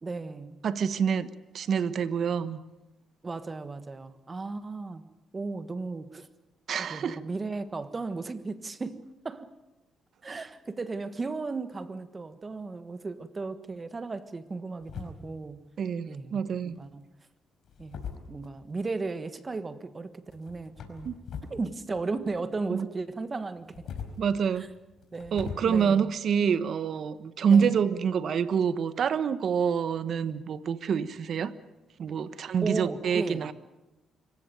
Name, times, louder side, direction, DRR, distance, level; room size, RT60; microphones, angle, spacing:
voice 1, 0.0-0.6 3.2-6.3 6.9-9.5 10.2-15.6 16.0-17.0 17.8-21.1 21.5-23.9 24.6-24.7 25.1-26.1 27.5-27.7 32.6-33.5, right 3 dB, 30° right, 1.4 m, -35 dB
voice 2, 0.6-2.6 6.7-7.2 15.8-16.8 21.0-21.2 22.7-22.9 24.2-24.7 25.3-31.5 32.0-33.5, right 7 dB, 60° right, 1.2 m, -27 dB
sound 1, 14.8-15.5 16.6-16.9 17.6-18.8 20.3-21.6 21.9-22.7 23.5-25.6, left 7 dB, 65° left, 4.7 m, -42 dB
25.5 x 16.0 x 9.3 m
cardioid pair, 90°, 0 cm